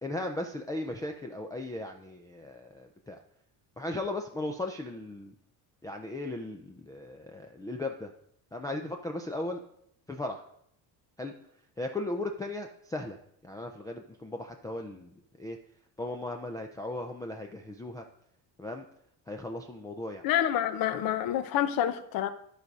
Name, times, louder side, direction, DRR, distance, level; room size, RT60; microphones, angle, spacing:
voice 1, 0.0-3.2 3.8-5.3 5.8-8.1 8.5-9.6 10.1-10.4 11.2-11.3 11.8-15.6 16.0-18.0 18.6-18.9 19.3-20.2, left 2 dB, 10° left, 0.3 m, -37 dB
voice 2, 20.2-22.3, left 11 dB, 60° left, 0.8 m, -28 dB
12.5 x 4.8 x 5.2 m
cardioid pair, 170°, 41 cm